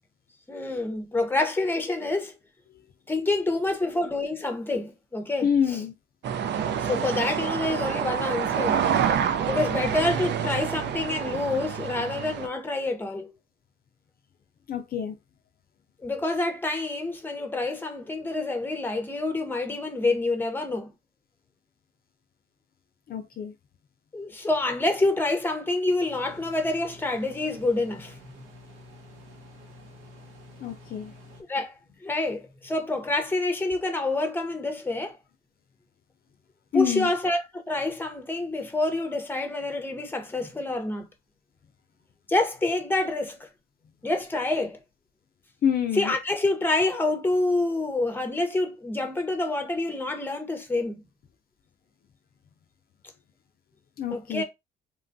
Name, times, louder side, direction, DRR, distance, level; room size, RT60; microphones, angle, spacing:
voice 1, 0.5-2.3 3.1-5.8 6.8-8.8 9.5-13.3 16.0-20.9 24.1-28.4 31.5-35.2 36.7-41.1 42.3-43.5 44.0-44.8 45.9-51.0 54.1-54.4, left 2 dB, 10° left, 0.7 m, -27 dB
voice 2, 5.4-5.9 8.9-9.0 14.7-15.1 23.1-23.5 30.6-31.1 36.7-37.1 45.6-46.1 54.0-54.4, left 8 dB, 50° left, 0.4 m, -27 dB
sound 1, 6.2-12.5, right 8 dB, 60° right, 0.4 m, -27 dB
sound 2, 26.1-31.4, left 1 dB, 75° right, 0.9 m, -49 dB
3.0 x 2.2 x 2.5 m
cardioid pair, 90°, 20 cm